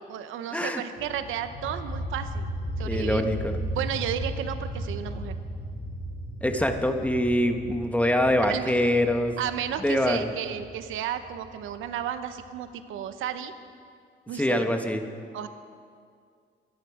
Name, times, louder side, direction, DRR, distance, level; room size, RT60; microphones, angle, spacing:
voice 1, 0.1-2.5 2.8-3.4 3.7-5.3 8.5-8.7 9.4-13.5 14.3-14.7 15.3-15.5, right 10 dB, 85° right, 10 dB, 0.9 m, -33 dB
sound 1, 1.0-12.5, equal, 60° left, 5.0 m, -35 dB
voice 2, 2.8-3.6 6.4-9.3 9.8-10.3 14.3-15.0, left 1 dB, 5° left, 6 dB, 1.3 m, -24 dB
24.0 x 10.5 x 5.0 m, 2.2 s
cardioid pair, 90°, 20 cm